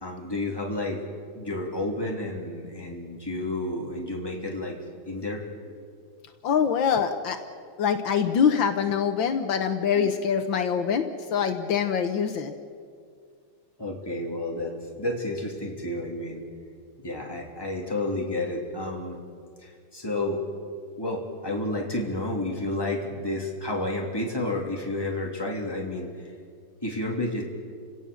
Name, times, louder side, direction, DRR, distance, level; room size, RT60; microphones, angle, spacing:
voice 1, 0.0-1.0 1.3-4.8 5.0-5.4 10.0-10.1 13.8-16.4 17.0-19.2 19.6-20.4 21.0-26.1 26.8-27.4, left 2 dB, 10° left, -1 dB, 3.1 m, -31 dB
voice 2, 6.4-7.4 7.8-11.0 11.3-12.5, left 7 dB, 75° left, 7 dB, 1.8 m, -24 dB
30.0 x 17.5 x 7.1 m, 2.2 s
omnidirectional pair, 2.2 m